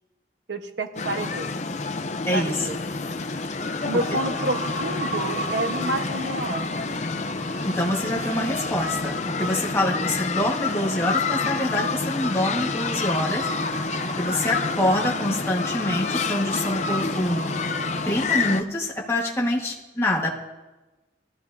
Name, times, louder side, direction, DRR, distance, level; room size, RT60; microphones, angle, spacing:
voice 1, 0.5-1.6 2.2-2.8 3.8-6.7, right 2 dB, 85° right, 6 dB, 1.2 m, -29 dB
sound 1, 1.0-18.6, left 4 dB, 40° left, 0.6 m, -28 dB
sound 2, 1.8-18.1, right 3 dB, 40° right, 0.5 m, -39 dB
voice 2, 7.6-9.1 9.4-13.4 14.2-17.5 18.1-20.3, left 1 dB, 15° left, -3 dB, 1.5 m, -25 dB
22.0 x 14.0 x 2.7 m, 1.1 s
head